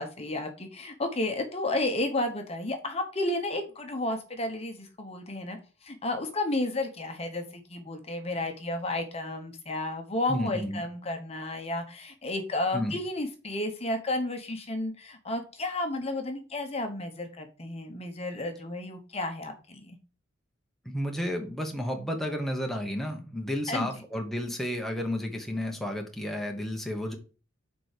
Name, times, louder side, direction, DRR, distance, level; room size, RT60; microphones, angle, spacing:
voice 1, 0.0-20.0 23.7-23.9, left 2 dB, 30° left, 5 dB, 1.0 m, -32 dB
voice 2, 10.3-10.8 12.7-13.0 20.8-27.2, equal, ahead, 2 dB, 1.0 m, -32 dB
6.8 x 4.7 x 4.9 m, 0.36 s
head